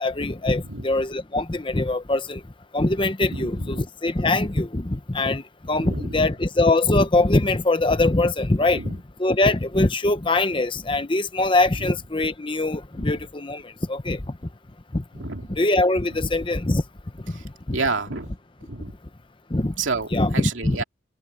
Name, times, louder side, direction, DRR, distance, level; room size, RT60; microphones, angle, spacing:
voice 1, 0.0-2.4 2.7-5.4 5.7-13.6 13.9-14.2 14.9-15.0 15.5-16.8 17.3-17.4 17.7-17.8 19.5-19.7 20.1-20.8, left 2 dB, 25° left, 0.8 m, -22 dB
voice 2, 3.3-3.8 5.7-6.2 8.6-8.9 13.0-13.1 15.2-15.5 17.3-17.4 17.7-18.3 18.7-18.9 19.8-20.1 20.3-20.8, right 4 dB, 75° right, 2.6 m, -29 dB
head